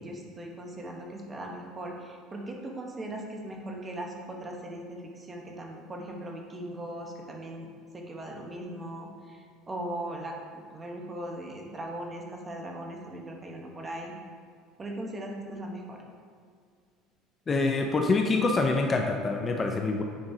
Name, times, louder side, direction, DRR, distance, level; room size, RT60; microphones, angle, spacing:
voice 1, 0.0-7.7 7.9-14.1 14.8-16.0, right 1 dB, 20° right, 1 dB, 1.0 m, -39 dB
voice 2, 17.5-20.0, left 3 dB, 25° left, 3 dB, 0.5 m, -25 dB
8.8 x 5.2 x 2.7 m, 2.1 s
supercardioid pair, 120°, 0 cm